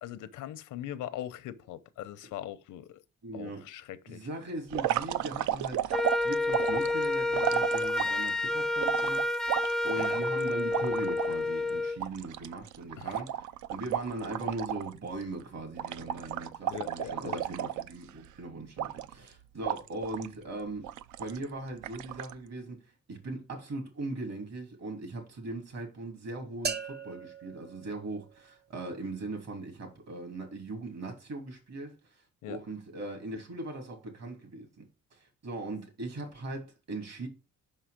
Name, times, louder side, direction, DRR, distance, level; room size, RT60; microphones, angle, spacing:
voice 1, 0.0-3.0 3.3-4.3 10.0-10.2 13.0-13.2 16.7-17.4 32.4-32.6, left 12 dB, 85° left, 0.8 m, -41 dB
voice 2, 3.2-3.6 4.1-9.3 9.8-13.4 13.7-20.9 21.2-22.8 23.1-31.9 32.5-34.9 35.1-37.3, right 2 dB, 60° right, 3.1 m, -39 dB
sound 1, 4.7-8.3 8.8-11.3 11.7-11.8 12.0-14.9 15.2-15.4 15.8-18.3 18.8-19.3 19.6-20.3 20.8-21.4 21.8-22.3, right 11 dB, 75° right, 0.5 m, -33 dB
Wind instrument woodwind instrument, 5.9-12.0, left 2 dB, ahead, 0.3 m, -29 dB
sound 2, 26.6-28.6, right 5 dB, 35° right, 0.9 m, -39 dB
5.6 x 5.5 x 5.0 m
cardioid pair, 90°, 30 cm